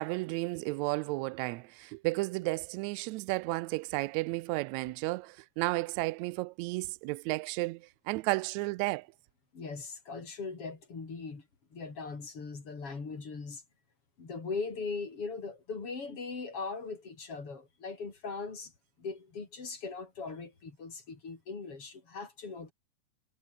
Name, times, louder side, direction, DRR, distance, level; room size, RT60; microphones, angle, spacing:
voice 1, 0.0-9.1, right 23 dB, 85° right, 1.6 m, -33 dB
voice 2, 9.5-11.5 11.7-13.6 14.2-18.7 19.0-22.7, left 4 dB, 45° left, 5.0 m, -40 dB
omnidirectional pair, 3.7 m